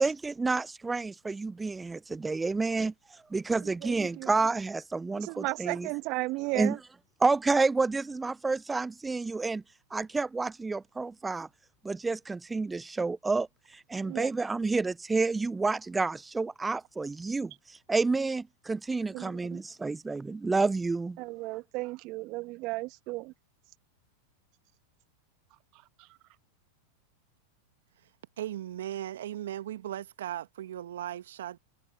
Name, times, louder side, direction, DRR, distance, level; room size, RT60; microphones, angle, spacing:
voice 1, 0.0-5.3 5.6-5.8 6.6-6.7 7.2-9.6 9.9-11.5 11.8-21.2, right 3 dB, 10° right, 0.3 m, -29 dB
voice 2, 3.6-4.4 5.1-6.8 14.0-14.3 19.1-19.6 21.2-23.3 25.7-26.2, right 22 dB, 50° right, 1.3 m, -35 dB
voice 3, 28.4-31.6, right 12 dB, 70° right, 1.3 m, -37 dB
hypercardioid pair, 100°, 0 cm